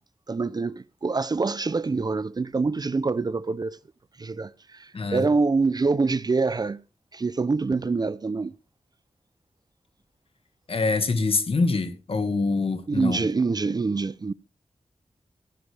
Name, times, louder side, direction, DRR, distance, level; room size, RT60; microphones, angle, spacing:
voice 1, 0.3-3.8 4.2-6.8 7.1-8.5 12.9-14.3, right 4 dB, 35° right, 0.6 m, -25 dB
voice 2, 4.9-5.3 10.7-13.3, left 3 dB, 60° left, 1.8 m, -25 dB
15.5 x 10.5 x 3.4 m
wide cardioid pair, 100°, 11 cm